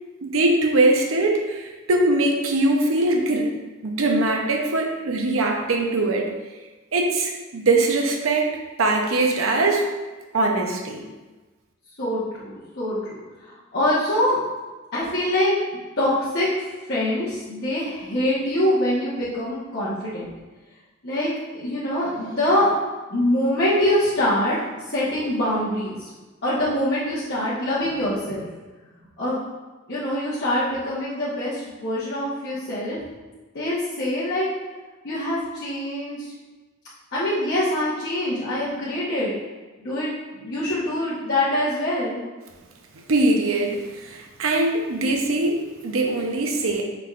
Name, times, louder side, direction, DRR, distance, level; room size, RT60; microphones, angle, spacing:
voice 1, 0.2-3.5 3.8-6.3 6.9-9.9 10.3-11.0 43.1-46.8, right 2 dB, 90° right, 2 dB, 0.7 m, -22 dB
voice 2, 12.0-13.2 13.4-14.4 14.9-15.6 16.0-16.5 16.9-20.3 21.0-22.7 23.1-24.6 24.9-26.1 26.4-28.5 29.2-29.4 29.9-33.0 33.5-34.5 35.0-36.3 37.1-39.3 39.8-42.2, left 1 dB, 55° left, -11 dB, 1.0 m, -24 dB
5.8 x 3.4 x 2.4 m, 1.2 s
head